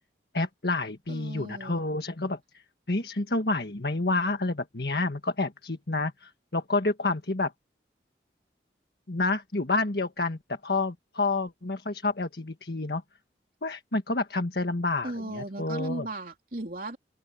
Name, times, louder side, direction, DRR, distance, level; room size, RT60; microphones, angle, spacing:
voice 1, 0.3-2.4 2.9-7.5 9.1-13.0 13.6-16.1, left 3 dB, 65° left, 1.6 m, -29 dB
voice 2, 1.1-1.8 15.0-17.0, right 1 dB, 50° right, 3.3 m, -36 dB
open air
head